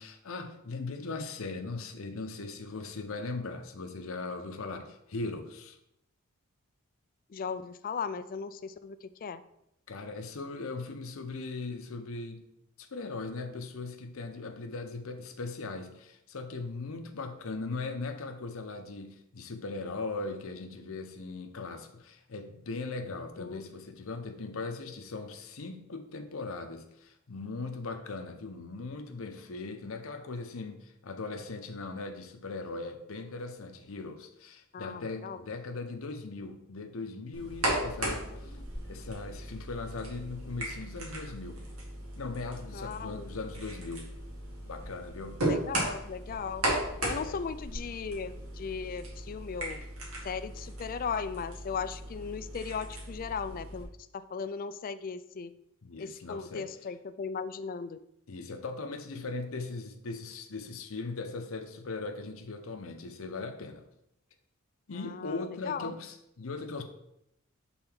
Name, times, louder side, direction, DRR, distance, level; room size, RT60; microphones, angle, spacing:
voice 1, 0.0-5.8 9.9-12.5 12.8-41.7 42.2-44.1 44.6-45.5 47.2-47.4 55.8-56.9 58.3-63.8 64.9-66.8, left 3 dB, 70° left, 6 dB, 0.7 m, -39 dB
voice 2, 7.3-9.0 9.2-9.4 23.4-23.7 34.7-35.4 42.7-43.3 45.4-46.6 47.0-49.8 50.2-53.9 54.1-55.5 56.0-58.0 65.3-65.4 65.6-65.9, left 6 dB, 40° left, 13 dB, 0.3 m, -37 dB
sound 1, 37.3-53.8, right 1 dB, 75° right, 1.9 m, -37 dB
5.8 x 3.9 x 6.0 m, 0.80 s
head